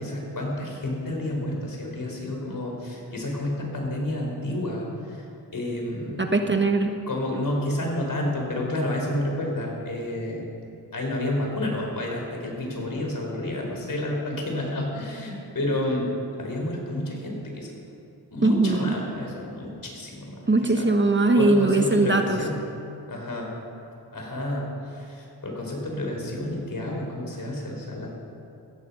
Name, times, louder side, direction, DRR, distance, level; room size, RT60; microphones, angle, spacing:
voice 1, 0.0-5.2 5.5-6.3 7.1-10.5 10.9-16.1 16.4-17.7 18.3-20.9 21.4-22.5 23.1-23.6 24.1-28.1, left 1 dB, 50° left, 0 dB, 5.0 m, -30 dB
voice 2, 6.2-7.0 18.4-19.0 20.5-22.4, right 2 dB, 25° right, 5 dB, 1.3 m, -20 dB
16.0 x 15.0 x 5.7 m, 2.7 s
cardioid pair, 60°, 41 cm